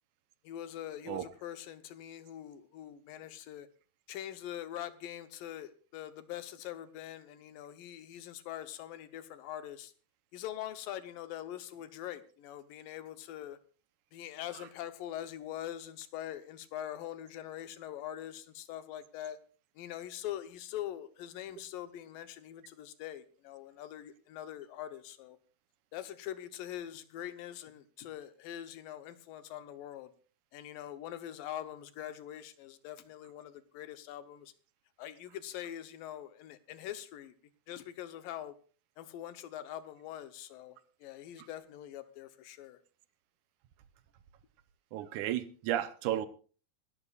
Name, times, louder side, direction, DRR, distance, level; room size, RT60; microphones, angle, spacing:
voice 1, 0.4-3.7 4.1-9.9 10.3-13.6 14.1-19.4 19.8-25.4 25.9-30.1 30.5-34.5 35.0-37.3 37.7-38.5 39.0-42.8, left 11 dB, 75° left, 2.5 m, -43 dB
voice 2, 44.9-46.3, right 12 dB, 70° right, 2.0 m, -33 dB
26.5 x 12.5 x 2.4 m
omnidirectional pair, 4.2 m